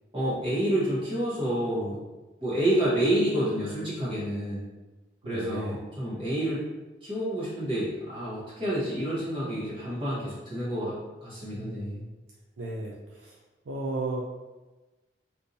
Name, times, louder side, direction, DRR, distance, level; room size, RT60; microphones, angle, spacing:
voice 1, 0.1-2.0 2.4-4.6 5.2-6.6 7.0-11.0 11.2-12.0, right 1 dB, 25° right, -9 dB, 0.9 m, -28 dB
voice 2, 5.2-5.8 11.5-12.1 12.6-13.4 13.7-14.2, right 2 dB, 85° right, -3 dB, 0.5 m, -35 dB
3.7 x 2.7 x 2.7 m, 1.1 s
head